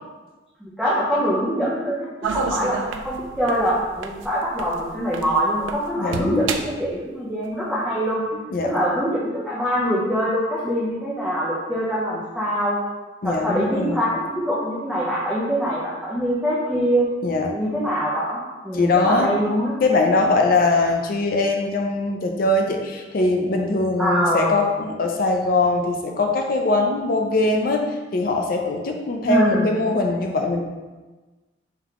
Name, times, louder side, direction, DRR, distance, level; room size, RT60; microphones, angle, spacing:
voice 1, 0.6-6.5 6.8-8.2 8.6-12.8 13.2-17.1 17.5-19.7 24.0-24.6 29.3-29.7, equal, 5° right, -9 dB, 0.6 m, -24 dB
sound 1, 2.2-5.9 6.1-6.8 7.4-7.5, right 5 dB, 80° right, 0.3 m, -30 dB
voice 2, 6.0-6.5 8.5-8.7 13.2-14.1 17.2-17.5 18.7-19.3 19.8-30.6, left 2 dB, 50° left, 3 dB, 0.4 m, -21 dB
3.6 x 2.9 x 3.6 m, 1.2 s
head